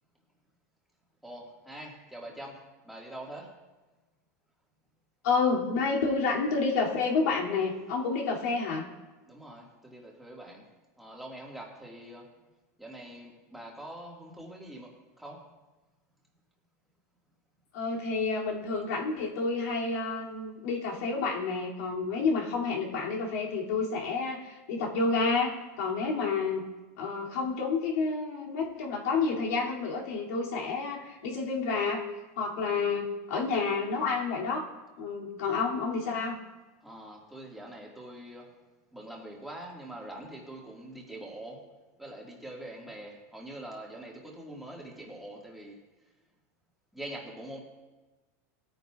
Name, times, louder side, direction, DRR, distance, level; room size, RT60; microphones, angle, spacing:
voice 1, 1.2-3.5 9.3-10.6 11.0-12.3 12.8-15.5 36.8-38.5 38.9-41.7 42.0-45.8 46.9-47.6, right 1 dB, ahead, -2 dB, 1.8 m, -44 dB
voice 2, 5.2-8.9 17.7-26.7 27.0-32.1 32.4-34.6 35.0-36.4, left 4 dB, 75° left, -3 dB, 2.5 m, -29 dB
20.0 x 9.2 x 2.4 m, 1.2 s
supercardioid pair, 155°, 8 cm